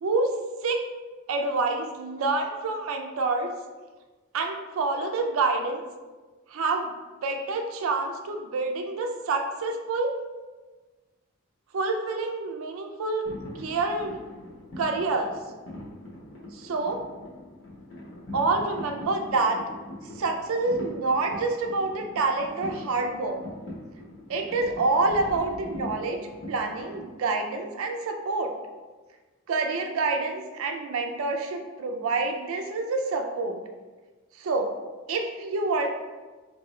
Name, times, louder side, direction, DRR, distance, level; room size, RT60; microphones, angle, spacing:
voice 1, 0.0-0.4 0.6-0.8 1.3-3.5 4.3-5.8 6.5-6.9 7.2-10.1 11.7-13.2 13.6-14.2 14.8-15.4 16.5-17.0 18.3-19.6 20.2-23.4 24.3-26.2 26.5-28.5 29.5-33.6 34.4-34.7 35.1-35.9, right 3 dB, 80° right, 4 dB, 0.4 m, -27 dB
sound 1, 13.2-27.1, left 1 dB, 55° left, 1.0 m, -41 dB
4.7 x 2.6 x 3.1 m, 1.3 s
head